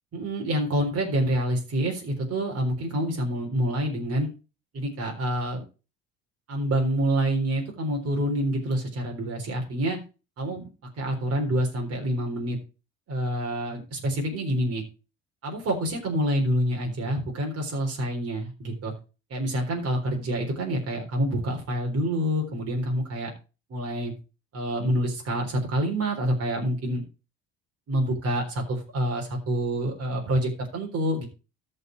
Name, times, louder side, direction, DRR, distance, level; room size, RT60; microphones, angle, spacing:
voice 1, 0.1-4.3 4.7-5.6 6.5-10.0 10.4-10.7 11.0-12.6 13.1-14.8 15.4-18.9 19.3-23.3 23.7-24.1 24.5-27.0 27.9-31.3, right 1 dB, 50° right, 1 dB, 3.9 m, -27 dB
14.0 x 5.6 x 4.6 m, 0.32 s
supercardioid pair, 90°, 30 cm